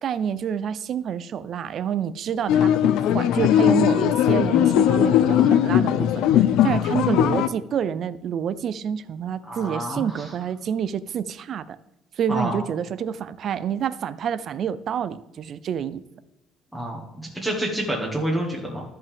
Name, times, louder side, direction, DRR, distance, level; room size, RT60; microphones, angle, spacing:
voice 1, 0.0-6.2 6.6-11.8 12.2-16.0, right 8 dB, 45° right, 15 dB, 0.4 m, -28 dB
sound 1, 2.5-7.5, left 10 dB, 80° left, 0.5 m, -19 dB
voice 2, 9.4-10.3 12.3-12.6 16.7-18.8, right 1 dB, ahead, -2 dB, 1.5 m, -28 dB
13.0 x 5.5 x 3.5 m, 0.97 s
cardioid pair, 150°, 0 cm